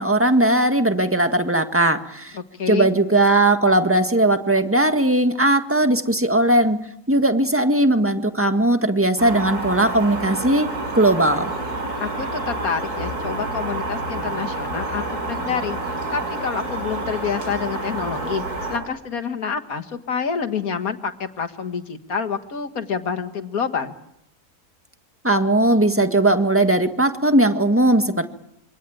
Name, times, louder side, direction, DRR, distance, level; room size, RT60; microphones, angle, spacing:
voice 1, 0.0-2.3 2.7-10.7 10.9-11.5 25.2-28.2, right 1 dB, 10° right, 7 dB, 1.7 m, -18 dB
voice 2, 2.3-2.9 12.0-18.4 18.7-23.9, left 6 dB, 65° left, 7 dB, 2.1 m, -28 dB
sound 1, 9.2-18.8, right 2 dB, 85° right, 6.7 m, -28 dB
27.0 x 25.0 x 8.9 m, 0.77 s
omnidirectional pair, 1.6 m